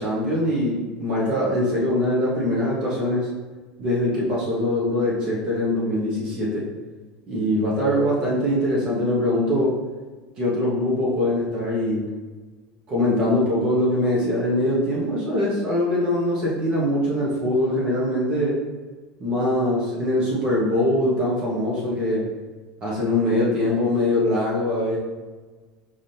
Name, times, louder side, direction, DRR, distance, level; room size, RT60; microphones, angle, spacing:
voice 1, 0.0-3.3 3.8-6.6 7.3-9.7 10.4-12.1 12.9-18.6 19.2-22.2 22.8-25.0, left 1 dB, 35° right, -5 dB, 1.2 m, -22 dB
5.0 x 3.6 x 2.9 m, 1.3 s
cardioid pair, 155°, 3 cm